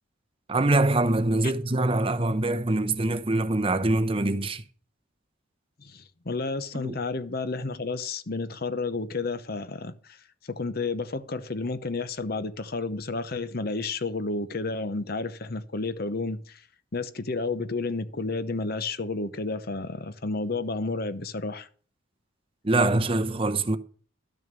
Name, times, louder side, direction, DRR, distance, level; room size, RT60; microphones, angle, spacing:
voice 1, 0.5-4.6 6.7-6.9 22.6-23.8, right 2 dB, 25° right, 0.8 m, -24 dB
voice 2, 5.8-10.2 10.4-16.6 16.9-21.7, left 3 dB, 50° left, 0.8 m, -31 dB
12.5 x 6.5 x 6.8 m
head